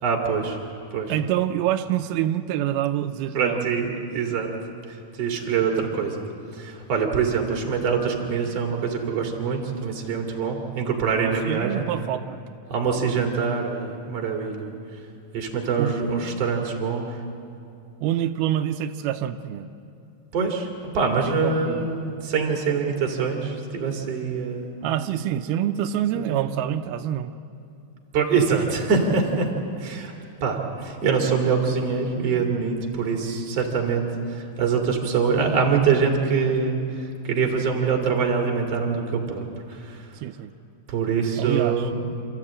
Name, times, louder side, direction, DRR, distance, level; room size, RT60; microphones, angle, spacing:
voice 1, 0.0-0.6 0.9-1.1 3.3-4.5 4.9-6.2 6.5-11.9 12.7-14.7 15.3-17.2 20.3-24.7 26.1-26.6 28.1-29.5 29.8-30.1 30.4-40.2 40.9-42.0, right 5 dB, 45° right, 1 dB, 3.3 m, -24 dB
voice 2, 1.1-3.7 7.0-7.1 11.2-12.4 15.8-15.9 18.0-19.7 21.4-21.9 24.8-27.3 40.2-40.5 41.4-41.9, right 11 dB, 90° right, 8 dB, 2.6 m, -26 dB
28.5 x 14.0 x 8.7 m, 2.5 s
omnidirectional pair, 4.3 m